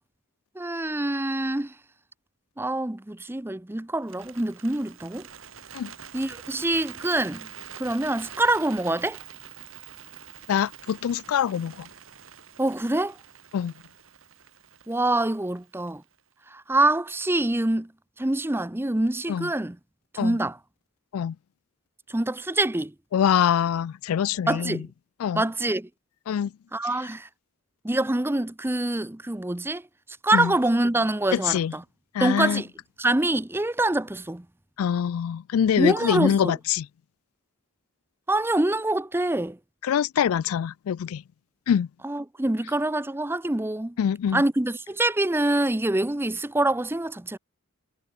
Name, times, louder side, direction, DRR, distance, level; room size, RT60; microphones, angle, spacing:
voice 1, 0.6-1.7 2.6-5.3 6.1-7.5 7.8-9.2 12.6-13.2 14.9-16.0 16.5-17.9 18.2-19.8 20.1-20.6 22.1-22.9 24.5-24.9 25.3-25.9 26.7-27.3 27.8-29.9 30.2-31.8 32.2-32.7 33.0-34.5 35.8-36.5 38.3-39.6 42.0-44.0 44.3-47.4, right 2 dB, 10° right, 0.6 m, -25 dB
Bird, 4.0-16.2, right 8 dB, 70° right, 2.7 m, -45 dB
voice 2, 10.5-11.9 13.5-13.7 19.3-19.5 20.2-20.4 21.1-21.4 23.1-24.9 25.2-25.4 26.3-26.5 30.3-30.5 31.3-31.7 32.1-32.6 34.8-36.9 39.8-41.2 41.7-41.9 44.0-44.4, left 8 dB, 80° left, 0.3 m, -24 dB
head